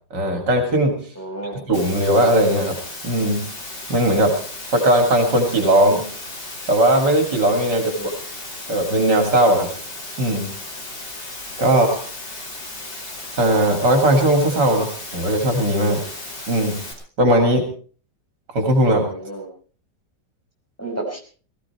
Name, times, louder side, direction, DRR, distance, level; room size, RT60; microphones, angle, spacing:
voice 1, 0.1-1.0 1.6-2.8 3.0-3.5 3.9-4.4 4.7-6.1 6.7-8.1 8.7-9.7 10.2-10.5 11.6-12.0 13.4-16.0 16.5-16.8 17.2-17.7 18.5-19.1, right 1 dB, 65° right, 5 dB, 3.4 m, -18 dB
voice 2, 1.2-1.6 7.9-8.1 19.0-19.5 20.8-21.2, right 2 dB, 5° left, 1 dB, 5.1 m, -31 dB
Water, 1.7-16.9, left 2 dB, 65° left, 5.3 m, -35 dB
19.0 x 15.5 x 4.5 m, 0.41 s
omnidirectional pair, 2.0 m